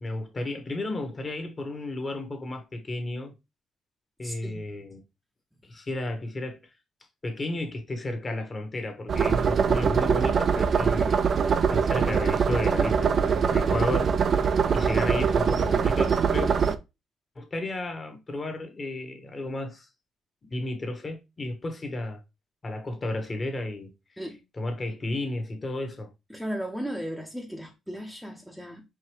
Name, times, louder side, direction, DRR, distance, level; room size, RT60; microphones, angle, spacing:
voice 1, 0.0-3.3 4.2-5.0 5.6-6.6 7.2-11.2 11.7-14.3 14.7-16.5 17.4-19.9 20.5-22.2 22.6-23.9 24.2-26.1, left 2 dB, 30° left, 1.1 m, -33 dB
voice 2, 4.2-4.7 24.2-24.4 26.3-28.8, equal, ahead, 0.7 m, -36 dB
sound 1, 9.1-16.7, right 6 dB, 50° right, 0.4 m, -23 dB
4.8 x 2.7 x 3.0 m
cardioid pair, 90°, 0 cm